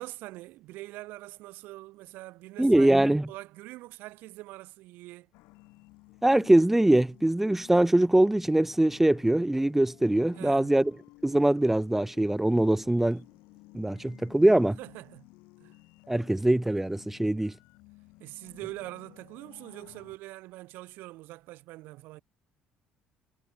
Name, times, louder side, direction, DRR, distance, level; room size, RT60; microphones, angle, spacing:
voice 1, 0.0-2.9 3.3-5.3 10.3-10.7 14.8-15.3 15.6-15.8 18.2-22.2, right 19 dB, 75° right, 3.1 m, -43 dB
voice 2, 2.6-3.3 6.2-10.9 11.2-13.2 13.7-14.8 16.1-17.5, right 1 dB, 10° right, 0.4 m, -23 dB
sound 1, 5.3-20.2, left 23 dB, 75° left, 2.2 m, -55 dB
hypercardioid pair, 60°, 3 cm